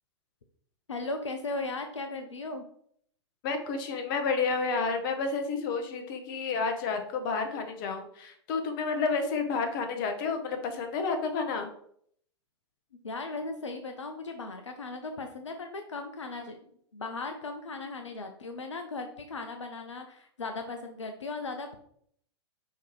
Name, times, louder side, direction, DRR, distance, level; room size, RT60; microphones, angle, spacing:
voice 1, 0.9-2.6 13.0-21.8, left 3 dB, 85° left, 5 dB, 0.5 m, -37 dB
voice 2, 3.4-11.7, left 4 dB, 45° left, 6 dB, 0.9 m, -30 dB
5.6 x 2.8 x 3.1 m, 0.66 s
figure-of-eight pair, 105°, 15 cm